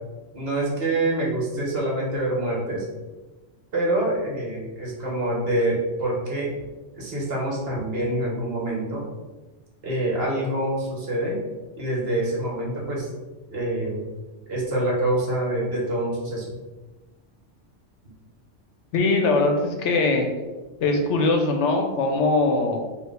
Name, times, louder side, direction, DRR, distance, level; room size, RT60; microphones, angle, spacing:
voice 1, 0.3-2.9 3.7-6.6 7.0-9.0 9.8-11.4 11.8-13.1 13.5-14.0 14.5-16.5, right 1 dB, 55° right, -3 dB, 1.2 m, -26 dB
voice 2, 18.9-20.3 20.8-22.9, left 3 dB, 70° left, 3 dB, 0.9 m, -21 dB
4.6 x 2.4 x 3.2 m, 1.2 s
omnidirectional pair, 1.3 m